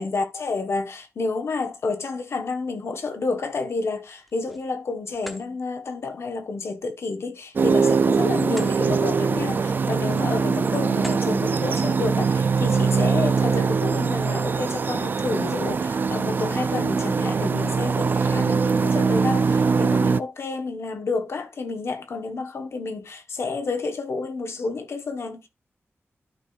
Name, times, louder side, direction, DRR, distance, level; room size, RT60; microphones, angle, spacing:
voice 1, 0.0-25.5, left 3 dB, 65° left, 1.1 m, -30 dB
sound 1, 4.1-4.7 5.1-5.5 7.6-8.8 9.2-9.4 10.0-10.4 10.9-11.3, equal, ahead, 0.8 m, -42 dB
sound 2, 7.6-20.2, right 5 dB, 45° right, 0.3 m, -22 dB
12.5 x 4.7 x 2.4 m
wide cardioid pair, 180°, 5 cm